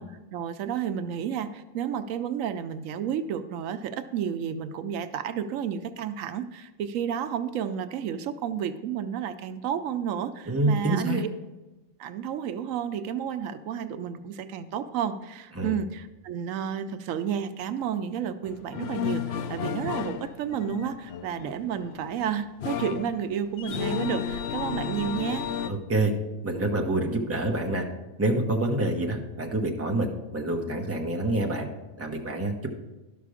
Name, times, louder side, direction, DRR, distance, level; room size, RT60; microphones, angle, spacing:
voice 1, 0.0-11.3 12.0-25.5, right 8 dB, 85° right, 10 dB, 1.0 m, -31 dB
voice 2, 10.5-11.2 15.6-15.7 25.6-26.1 26.4-27.8 28.2-30.1 30.3-31.7 32.0-32.7, right 2 dB, 15° right, 1 dB, 0.8 m, -27 dB
sound 1, 18.4-25.7, left 8 dB, 65° left, 0.7 m, -33 dB
12.0 x 5.9 x 4.9 m, 1.1 s
omnidirectional pair, 1.3 m